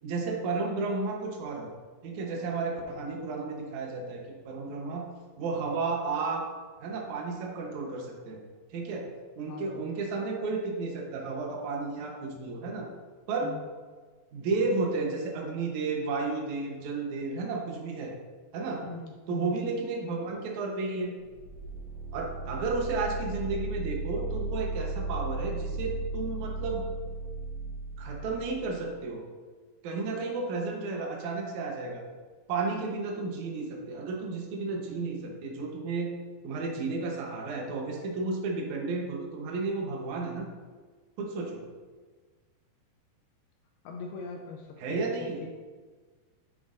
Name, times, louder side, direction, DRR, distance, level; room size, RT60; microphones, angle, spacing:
voice 1, 0.0-1.7 2.0-5.0 5.4-6.4 6.8-8.4 8.7-9.1 9.4-12.9 13.3-13.5 14.3-18.1 18.5-18.8 19.3-21.1 22.1-26.9 28.0-29.2 29.8-32.0 32.5-36.1 36.4-40.5 41.2-41.6 44.8-45.4, right 3 dB, 80° right, 0 dB, 1.7 m, -32 dB
voice 2, 9.4-9.8 13.4-13.7 18.8-19.6 43.8-45.5, left 4 dB, 80° left, 1 dB, 2.3 m, -41 dB
sound 1, 21.2-29.0, right 2 dB, 60° right, 1.1 m, -36 dB
9.8 x 8.3 x 2.6 m, 1.4 s
omnidirectional pair, 5.0 m